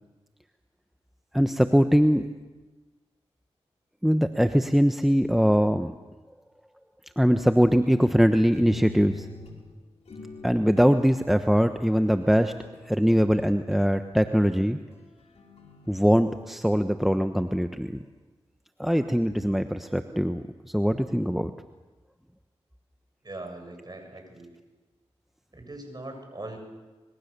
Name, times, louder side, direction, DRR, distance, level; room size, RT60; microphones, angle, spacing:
voice 1, 1.3-2.3 4.0-5.9 7.2-9.3 10.4-12.5 12.8-14.8 15.9-18.0 18.8-21.5, equal, ahead, 8 dB, 1.1 m, -22 dB
sound 1, 8.1-9.6 10.1-10.9 12.0-13.7 14.9-16.0, left 3 dB, 70° left, 5.6 m, -44 dB
voice 2, 23.2-24.6 25.5-26.6, right 2 dB, 40° right, 4 dB, 7.5 m, -40 dB
26.0 x 22.0 x 6.8 m, 1.2 s
cardioid pair, 40°, 11 cm